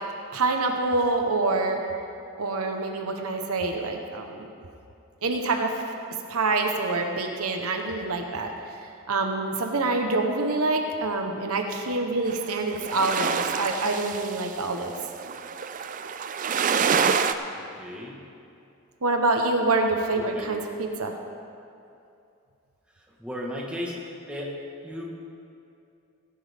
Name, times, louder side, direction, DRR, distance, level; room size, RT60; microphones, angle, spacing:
voice 1, 0.3-1.8 2.4-4.5 5.2-5.7 6.3-8.5 9.1-14.9 19.0-21.1, right 3 dB, 75° right, 3 dB, 1.1 m, -26 dB
sound 1, 12.3-17.3, right 6 dB, 35° right, 0.4 m, -27 dB
voice 2, 17.5-18.2 20.1-20.5 22.9-25.0, left 1 dB, 5° right, -3 dB, 1.5 m, -36 dB
17.5 x 10.5 x 3.6 m, 2.5 s
head